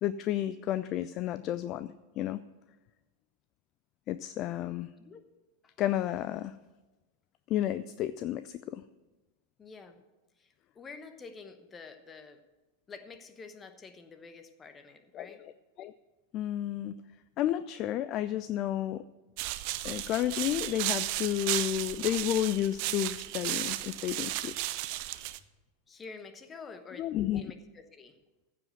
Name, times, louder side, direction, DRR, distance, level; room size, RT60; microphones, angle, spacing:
voice 1, 0.0-2.4 4.1-4.9 5.8-6.6 7.5-8.8 15.1-15.5 15.8-15.9 16.3-17.0 17.4-19.0 19.8-24.6 27.0-27.5, left 12 dB, 35° left, 14 dB, 0.3 m, -31 dB
voice 2, 9.6-10.0 10.8-12.4 12.9-15.4 25.9-27.1 27.3-28.1, left 4 dB, 20° left, 9 dB, 1.0 m, -48 dB
sound 1, 19.4-25.4, right 16 dB, 45° right, 0.5 m, -34 dB
15.0 x 5.1 x 7.9 m, 1.2 s
figure-of-eight pair, 90°, 0 cm